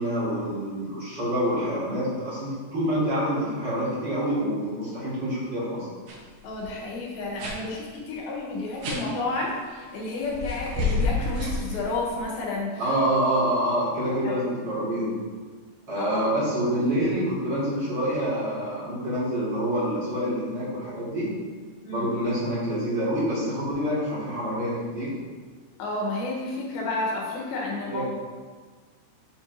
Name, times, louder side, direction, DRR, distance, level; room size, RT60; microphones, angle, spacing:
voice 1, 0.0-5.9 12.8-15.1 15.9-21.3 21.9-25.1 27.9-28.1, equal, 35° right, -11 dB, 2.0 m, -27 dB
sound 1, 6.1-6.2 6.5-6.7 7.4-7.6 8.8-9.0 10.3-12.2, left 2 dB, 65° right, 2.1 m, -28 dB
voice 2, 6.4-12.9 14.1-14.6 16.0-16.2 21.8-22.1 25.8-28.1, left 2 dB, 70° left, -3 dB, 2.9 m, -31 dB
7.1 x 6.8 x 2.7 m, 1.5 s
omnidirectional pair, 4.7 m